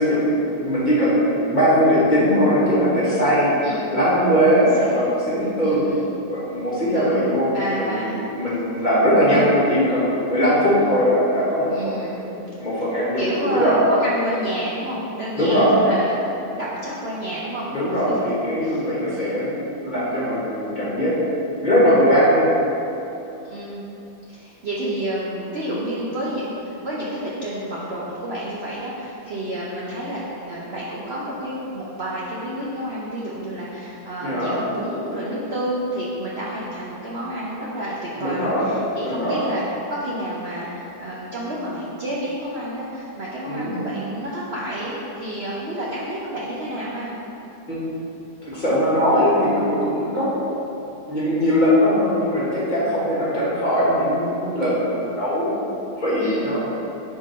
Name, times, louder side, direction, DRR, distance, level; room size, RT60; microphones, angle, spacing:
voice 1, 0.0-3.5 3.9-5.8 6.3-12.1 12.6-13.8 15.4-15.7 17.7-21.1 21.6-22.5 34.2-34.6 38.2-38.7 39.0-39.5 43.4-43.8 47.7-47.9 48.4-50.3 51.1-55.7 56.0-56.8, equal, 30° left, -8 dB, 1.4 m, -20 dB
voice 2, 5.6-6.1 6.8-8.2 11.7-12.5 13.2-17.7 18.1-18.2 18.6-18.8 19.1-19.4 23.5-23.8 24.3-39.6 39.9-47.1 56.2-56.5, right 1 dB, 50° right, -7 dB, 0.8 m, -30 dB
4.9 x 4.5 x 5.3 m, 2.9 s
omnidirectional pair, 1.8 m